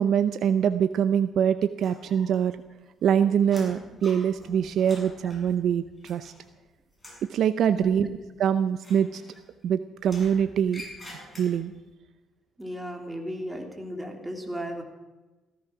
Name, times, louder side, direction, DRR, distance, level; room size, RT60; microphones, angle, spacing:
voice 1, 0.0-2.6 3.0-6.3 7.3-8.1 8.4-9.2 9.6-10.8 11.4-11.7, right 8 dB, 70° right, 11 dB, 0.7 m, -24 dB
sound 1, 1.8-2.6 2.9-6.6 6.9-7.3 8.7-9.6 10.0-11.8, left 1 dB, 15° left, 7.1 m, -46 dB
voice 2, 7.7-8.1 12.6-14.8, equal, 10° right, 3 dB, 3.2 m, -35 dB
16.0 x 14.5 x 6.1 m, 1.1 s
cardioid pair, 90°, 0 cm